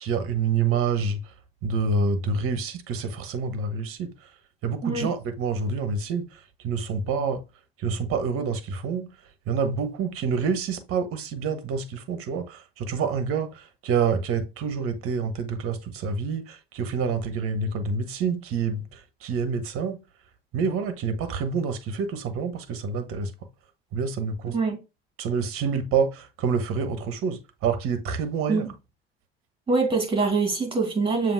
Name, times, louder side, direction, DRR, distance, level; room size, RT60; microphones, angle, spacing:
voice 1, 0.0-1.3 1.6-4.3 4.6-7.4 7.8-9.1 9.5-20.0 20.5-23.3 23.9-24.6 25.2-28.7, right 5 dB, 50° right, 1.0 m, -27 dB
voice 2, 29.7-31.3, right 4 dB, 15° right, 2.0 m, -24 dB
7.0 x 2.7 x 2.6 m
hypercardioid pair, 65°, 30 cm